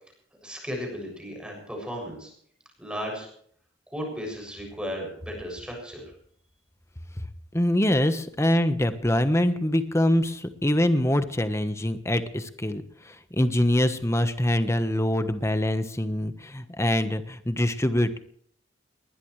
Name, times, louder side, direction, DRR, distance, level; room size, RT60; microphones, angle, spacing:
voice 1, 0.4-2.3 2.8-3.3 3.9-6.1, equal, 5° right, 0 dB, 7.2 m, -35 dB
voice 2, 7.5-18.2, left 1 dB, 15° left, 9 dB, 1.3 m, -24 dB
20.5 x 20.0 x 3.3 m, 0.62 s
head